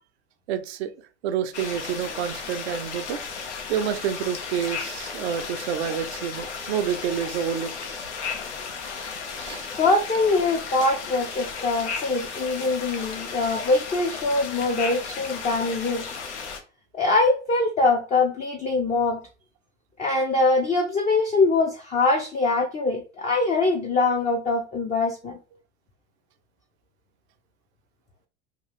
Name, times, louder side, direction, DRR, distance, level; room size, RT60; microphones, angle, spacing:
voice 1, 0.5-0.9 1.2-3.2 3.7-7.7 9.4-9.7, right 8 dB, 70° right, 9 dB, 0.5 m, -28 dB
sound 1, 1.5-16.6, left 5 dB, 75° left, 0.7 m, -34 dB
voice 2, 9.7-16.0 16.9-19.2 20.0-25.4, left 3 dB, 20° left, 1 dB, 0.5 m, -23 dB
2.8 x 2.4 x 3.1 m, 0.36 s
hypercardioid pair, 80°, 35 cm